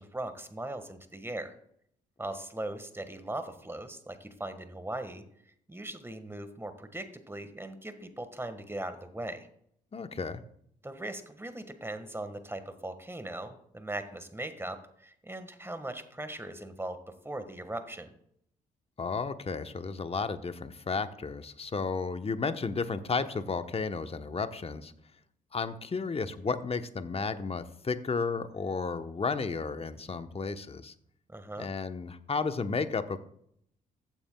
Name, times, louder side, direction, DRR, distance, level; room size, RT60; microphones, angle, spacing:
voice 1, 0.0-1.5 2.2-5.2 5.7-9.5 10.8-17.0 17.2-18.1 31.3-31.7, right 1 dB, 10° right, 9 dB, 1.6 m, -39 dB
voice 2, 9.9-10.4 19.0-24.9 25.5-30.9 31.6-33.2, left 4 dB, 30° left, 10 dB, 1.0 m, -33 dB
15.0 x 8.9 x 2.3 m, 0.68 s
hypercardioid pair, 50°, 19 cm